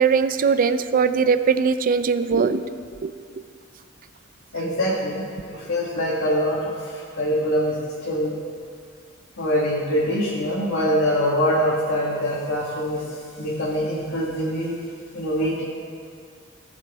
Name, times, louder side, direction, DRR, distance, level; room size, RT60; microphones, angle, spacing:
voice 1, 0.0-2.6 3.0-3.1, right 5 dB, 45° right, 11 dB, 0.4 m, -20 dB
voice 2, 4.5-5.2 5.7-6.6 7.2-7.7 8.0-8.3 9.4-13.0 13.4-14.7 15.1-15.6, equal, 75° left, -7 dB, 1.5 m, -23 dB
18.0 x 6.0 x 3.5 m, 2.2 s
head